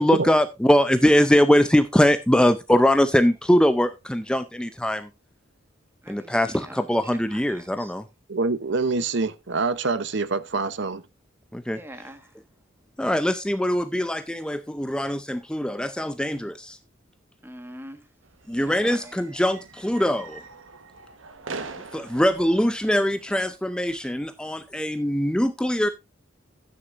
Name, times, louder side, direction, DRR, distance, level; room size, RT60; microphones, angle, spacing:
voice 1, 0.0-5.1 6.1-8.0 11.5-11.8 13.0-16.8 18.5-20.4 21.9-25.9, equal, 5° left, 0.5 m, -22 dB
voice 2, 6.0-7.9 11.7-12.4 17.4-18.1 18.8-19.1, right 1 dB, 10° right, 1.5 m, -43 dB
voice 3, 8.3-11.0, right 3 dB, 60° right, 0.8 m, -25 dB
sound 1, 18.2-23.6, right 4 dB, 80° right, 1.2 m, -42 dB
13.0 x 9.7 x 2.5 m
head